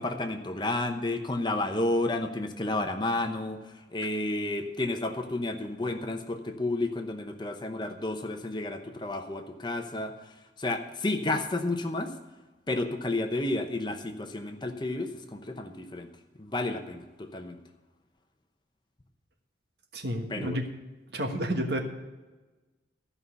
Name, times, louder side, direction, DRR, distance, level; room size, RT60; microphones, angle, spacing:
voice 1, 0.0-12.2 12.7-16.1 16.4-17.6 20.3-20.6, left 2 dB, 25° left, 6 dB, 0.8 m, -31 dB
voice 2, 19.9-20.6 21.1-21.8, equal, 60° right, 4 dB, 1.5 m, -30 dB
13.5 x 5.6 x 8.1 m, 1.2 s
head